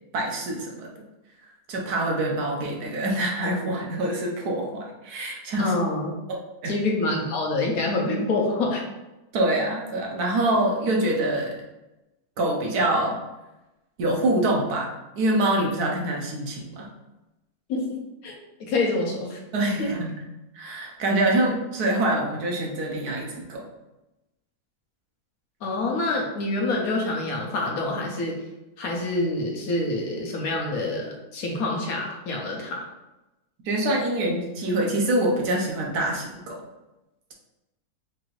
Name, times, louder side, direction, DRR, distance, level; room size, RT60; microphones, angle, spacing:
voice 1, 0.1-0.9 1.7-5.7 6.3-6.8 9.3-11.6 12.4-13.2 14.0-14.9 15.1-16.9 19.5-20.2 20.5-23.7 33.6-36.6, right 1 dB, 75° right, -1 dB, 1.3 m, -25 dB
voice 2, 5.6-6.1 6.7-8.8 17.7-18.3 18.6-19.4 19.8-19.9 25.6-28.4 28.8-32.9, left 2 dB, 65° left, 0 dB, 1.2 m, -26 dB
4.8 x 2.6 x 3.0 m, 0.99 s
omnidirectional pair, 1.7 m